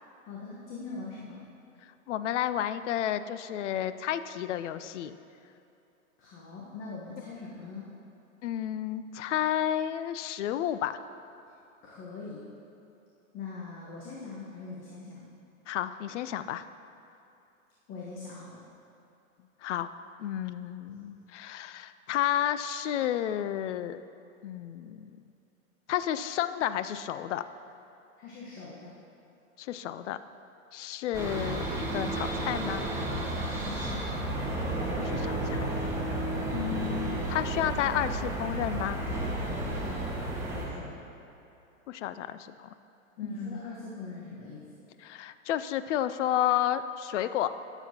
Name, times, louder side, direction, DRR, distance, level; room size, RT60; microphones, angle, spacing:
voice 1, 0.3-1.4 6.2-7.9 11.8-12.5 13.3-15.3 17.9-18.7 28.2-29.0 33.6-34.0 40.5-41.0 43.2-44.9, left 4 dB, 30° left, -5 dB, 1.2 m, -42 dB
voice 2, 2.1-5.2 8.4-11.0 15.7-16.7 19.6-19.9 20.2-24.0 24.4-25.2 25.9-27.4 29.6-30.2 30.7-31.7 31.9-32.9 35.0-35.7 36.5-39.0 41.9-42.7 43.2-43.6 45.0-47.5, left 11 dB, 60° left, 12 dB, 0.5 m, -31 dB
sound 1, 31.1-40.7, right 1 dB, 5° right, 1.5 m, -32 dB
13.0 x 7.1 x 2.9 m, 2.8 s
hypercardioid pair, 115°, 42 cm